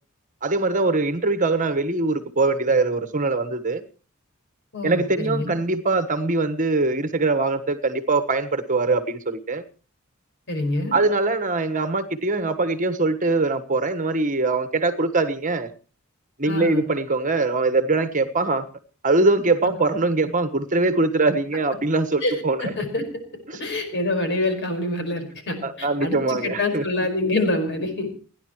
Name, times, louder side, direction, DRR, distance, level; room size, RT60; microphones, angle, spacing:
voice 1, 0.4-3.8 4.8-9.6 10.9-15.7 16.4-18.6 19.0-22.7 23.5-23.6 25.6-26.9, right 3 dB, 40° right, 10 dB, 1.3 m, -22 dB
voice 2, 4.7-5.5 10.5-11.0 16.4-16.8 22.2-23.0 23.6-28.1, left 2 dB, 55° left, 6 dB, 5.1 m, -26 dB
30.0 x 10.5 x 3.1 m, 0.36 s
head